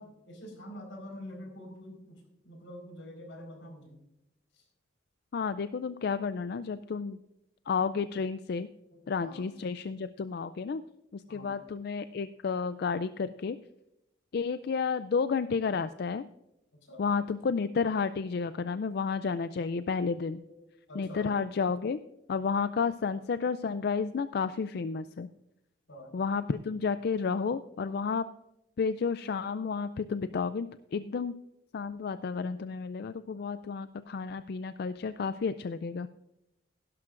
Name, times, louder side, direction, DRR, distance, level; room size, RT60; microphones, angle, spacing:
voice 1, 0.0-4.0 4.5-4.6 9.2-9.4 11.3-11.5 16.7-17.0 17.8-18.2 19.7-19.9 20.4-20.6 20.9-21.3 25.9-26.2, left 1 dB, 85° left, 3 dB, 4.5 m, -46 dB
voice 2, 5.3-7.2 7.7-8.7 9.1-10.8 11.1-13.6 14.3-16.2 17.0-20.4 21.0-22.0 22.3-25.3 26.1-28.3 28.8-31.3 31.7-36.1, left 5 dB, 55° left, 12 dB, 0.4 m, -31 dB
16.0 x 12.0 x 2.5 m, 0.87 s
head